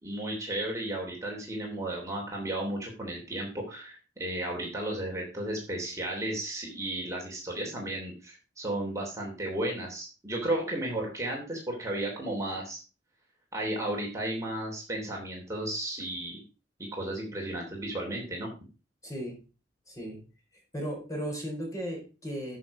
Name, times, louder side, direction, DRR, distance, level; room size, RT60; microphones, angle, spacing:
voice 1, 0.0-12.8 13.5-16.4 16.9-18.5, right 1 dB, 15° right, -1 dB, 3.1 m, -34 dB
voice 2, 19.0-19.4 19.9-20.2 20.7-22.6, equal, 20° left, 1 dB, 4.5 m, -36 dB
13.0 x 6.3 x 4.8 m, 0.32 s
head